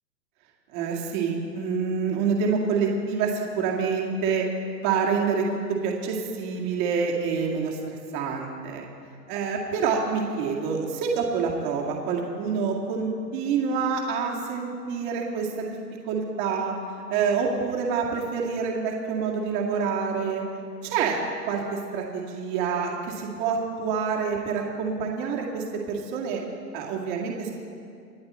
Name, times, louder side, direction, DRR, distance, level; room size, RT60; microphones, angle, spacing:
voice 1, 0.7-4.5 4.8-5.5 5.8-8.8 9.3-15.8 16.0-16.7 17.1-20.4 20.8-21.2 21.5-26.4 26.7-27.5, right 5 dB, 30° right, -1 dB, 2.2 m, -27 dB
28.0 x 10.5 x 4.4 m, 2.4 s
hypercardioid pair, 150°, 49 cm